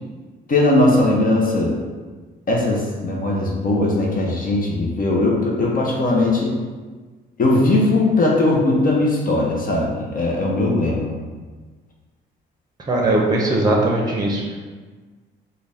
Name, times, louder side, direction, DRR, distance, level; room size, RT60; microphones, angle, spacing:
voice 1, 0.5-1.7 2.5-6.6 7.4-11.1, left 2 dB, 45° left, -2 dB, 0.7 m, -19 dB
voice 2, 12.9-14.6, right 2 dB, 20° right, -1 dB, 0.6 m, -19 dB
3.7 x 2.2 x 3.4 m, 1.4 s
cardioid pair, 90°, 20 cm